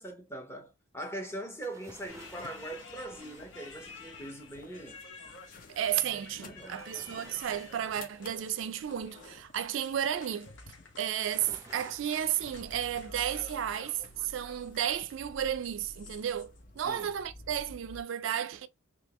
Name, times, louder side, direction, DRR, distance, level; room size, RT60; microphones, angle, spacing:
voice 1, 0.0-5.0 6.3-6.8 16.8-17.1, right 1 dB, 10° left, 0.8 m, -41 dB
sound 1, 1.6-4.4 6.8-9.4 11.2-13.5 13.9-14.0, right 2 dB, 15° right, 0.5 m, -55 dB
sound 2, 1.9-18.0, left 2 dB, 45° left, 0.6 m, -53 dB
sound 3, 2.1-16.6, left 4 dB, 65° left, 1.0 m, -52 dB
voice 2, 5.7-10.5 11.0-18.7, right 10 dB, 70° right, 0.3 m, -33 dB
3.5 x 2.9 x 3.0 m
head